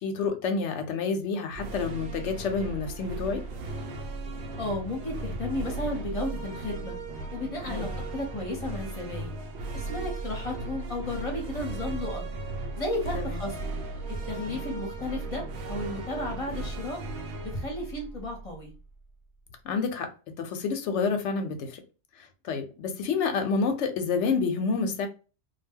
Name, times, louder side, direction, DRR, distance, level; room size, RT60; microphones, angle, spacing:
voice 1, 0.0-3.4 7.7-7.9 13.1-13.4 19.6-20.1 20.4-21.8 22.2-25.1, left 5 dB, 85° left, 0.9 m, -29 dB
sound 1, 1.5-18.9, right 3 dB, 70° right, 0.8 m, -36 dB
voice 2, 4.6-7.0 7.3-9.4 9.7-12.2 12.8-13.7 14.1-17.0 17.4-18.7, left 1 dB, 35° left, 0.8 m, -34 dB
2.2 x 2.1 x 3.5 m
omnidirectional pair, 1.2 m